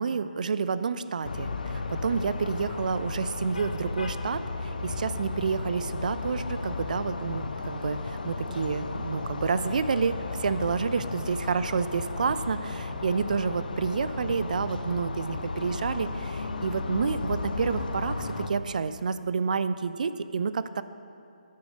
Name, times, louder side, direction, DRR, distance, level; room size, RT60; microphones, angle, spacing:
voice 1, 0.0-4.4 4.8-20.8, right 5 dB, 65° right, 13 dB, 0.3 m, -29 dB
sound 1, 1.2-18.5, left 3 dB, 75° left, 0.6 m, -34 dB
9.5 x 6.3 x 3.8 m, 2.7 s
hypercardioid pair, 155°, 5 cm